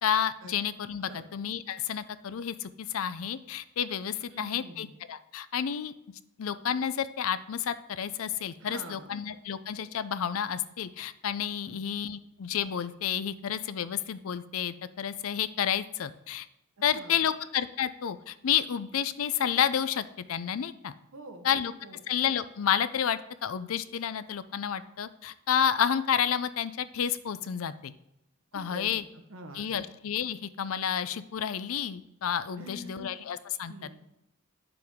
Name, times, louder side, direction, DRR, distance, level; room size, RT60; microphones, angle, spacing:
voice 1, 0.0-5.9 6.4-16.5 16.8-20.9 21.4-21.7 22.1-27.9 28.5-29.0 29.5-33.7, left 8 dB, 70° left, 14 dB, 0.4 m, -30 dB
voice 2, 4.3-4.9 8.6-9.2 11.6-11.8 16.8-17.3 21.1-22.0 28.5-29.0 29.3-29.8 32.6-33.2 33.7-34.1, right 1 dB, 65° right, 5 dB, 1.1 m, -46 dB
9.3 x 6.9 x 3.6 m, 0.85 s
head